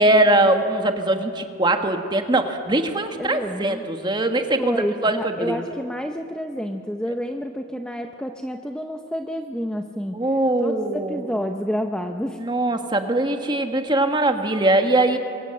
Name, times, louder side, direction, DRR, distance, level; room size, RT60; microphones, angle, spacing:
voice 1, 0.0-5.6 10.1-11.2 12.4-15.2, right 1 dB, 20° right, 6 dB, 1.4 m, -21 dB
voice 2, 3.2-3.8 4.6-10.2 10.6-12.4, equal, 5° left, 5 dB, 0.6 m, -29 dB
26.0 x 23.0 x 7.7 m, 2.7 s
head